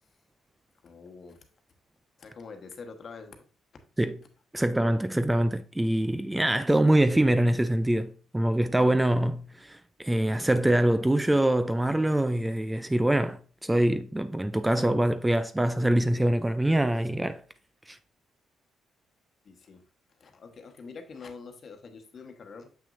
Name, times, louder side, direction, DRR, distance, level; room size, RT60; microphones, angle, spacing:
voice 1, 0.8-1.4 2.2-3.5 19.4-19.8 20.2-22.7, left 4 dB, 50° left, 1.2 m, -45 dB
voice 2, 4.5-17.4 17.9-18.0, right 1 dB, 10° right, 0.4 m, -24 dB
6.9 x 6.0 x 2.6 m
cardioid pair, 90°, 0 cm